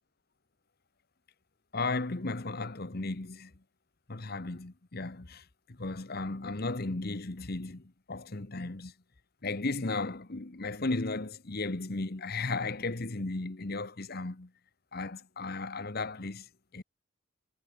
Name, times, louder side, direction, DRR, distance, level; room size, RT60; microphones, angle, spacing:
voice 1, 1.7-3.5 4.1-8.9 9.4-14.5 14.9-16.8, left 3 dB, 50° left, 1.1 m, -35 dB
head